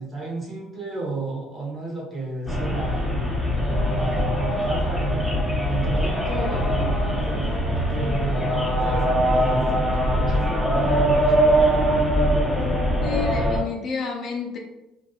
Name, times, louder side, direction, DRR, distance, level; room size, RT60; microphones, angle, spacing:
voice 1, 0.0-3.1 3.8-11.5, right 3 dB, 30° right, -3 dB, 0.9 m, -32 dB
sound 1, 2.5-13.6, equal, 5° right, 1.1 m, -22 dB
voice 2, 13.0-14.6, left 6 dB, 50° left, 1 dB, 0.5 m, -30 dB
2.5 x 2.5 x 2.3 m, 0.93 s
supercardioid pair, 95°, 0 cm